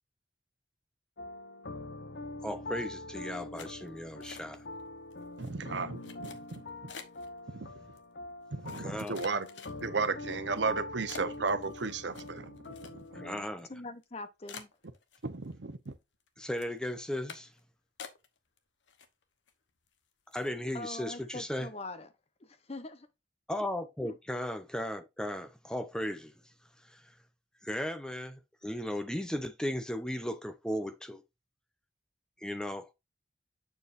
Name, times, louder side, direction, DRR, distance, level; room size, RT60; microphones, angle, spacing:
sound 1, 1.2-13.4, left 2 dB, 65° left, 0.7 m, -44 dB
voice 1, 2.4-4.6 8.8-9.2 13.1-13.7 16.4-17.5 20.3-21.7 23.5-26.3 26.9-27.0 27.6-31.2 32.4-32.9, left 1 dB, 5° left, 0.7 m, -36 dB
sound 2, 3.6-4.8 5.1-5.5 6.0-7.3 8.0-8.1 8.7-10.1 10.6-10.7 11.1-13.3 13.6-13.7 14.0-14.1 14.5-15.5 15.9-16.3 16.6-16.8 17.3-17.6 18.0-18.6 18.9-19.5 19.9-20.0 20.3-20.6, left 6 dB, 90° left, 1.1 m, -48 dB
voice 2, 5.4-6.9 7.5-7.7 8.5-9.5 9.8-13.2 15.2-15.9, right 4 dB, 80° right, 0.9 m, -35 dB
voice 3, 13.7-14.7 20.7-22.1 22.4-23.1 24.1-24.2, left 2 dB, 35° left, 0.8 m, -43 dB
7.1 x 6.7 x 2.6 m
head